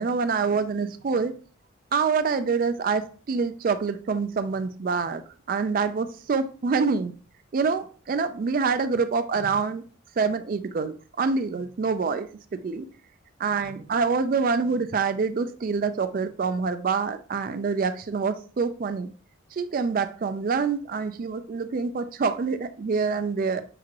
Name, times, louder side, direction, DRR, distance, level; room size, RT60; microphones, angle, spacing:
voice 1, 0.0-1.3 1.9-5.2 5.5-7.1 7.5-9.8 10.2-12.9 13.4-19.1 19.5-23.6, right 5 dB, 45° right, 0.3 m, -26 dB
5.9 x 2.5 x 2.9 m
head